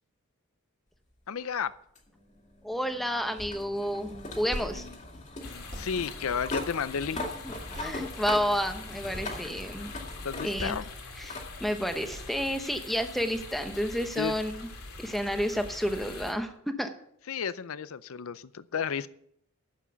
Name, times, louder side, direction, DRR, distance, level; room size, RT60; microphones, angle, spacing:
voice 1, 1.3-1.7 4.4-4.9 5.4-7.2 10.2-10.8 14.2-14.3 17.3-19.1, left 6 dB, 70° left, 16 dB, 0.5 m, -33 dB
sound 1, 1.9-10.8 11.3-11.5 12.8-12.9 15.8-15.9, left 2 dB, 35° left, 2.1 m, -40 dB
voice 2, 2.6-4.8 7.1-9.9 10.4-10.7 11.2-11.3 11.6-14.7 15.0-16.5 16.8-16.9, equal, ahead, 7 dB, 0.9 m, -30 dB
sound 2, 3.4-3.7 4.0-4.8 5.1-5.3 5.7-5.9 7.1-7.2 7.7-8.2 8.6-8.7 8.9-9.3 10.1-10.2 10.6-11.0 11.3-11.5 12.1-12.4, equal, 35° right, 2.0 m, -41 dB
sound 3, 5.4-16.3, left 3 dB, 90° left, 2.4 m, -43 dB
11.0 x 7.4 x 6.9 m, 0.69 s
head